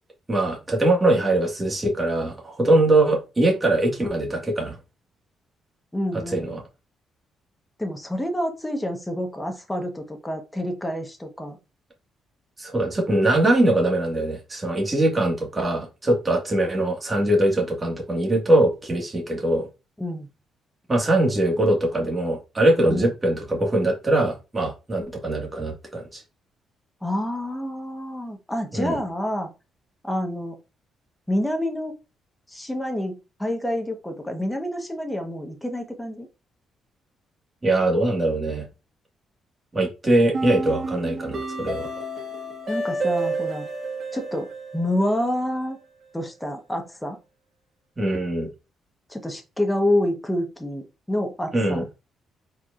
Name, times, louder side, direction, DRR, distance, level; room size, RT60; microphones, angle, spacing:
voice 1, 0.3-4.8 6.3-6.6 12.6-19.7 20.9-26.2 28.7-29.0 37.6-38.7 39.7-41.9 48.0-48.5 51.5-51.8, right 1 dB, 25° right, 0 dB, 1.9 m, -22 dB
voice 2, 5.9-6.6 7.8-11.6 20.0-20.3 22.9-23.1 27.0-29.5 30.0-30.5 31.3-32.0 32.5-36.3 42.7-43.7 44.1-45.8 46.1-47.2 49.1-51.8, left 1 dB, 5° left, 4 dB, 1.2 m, -28 dB
sound 1, 40.3-45.4, right 2 dB, 45° right, 1.7 m, -30 dB
4.4 x 4.4 x 2.5 m, 0.28 s
cardioid pair, 90°, 0 cm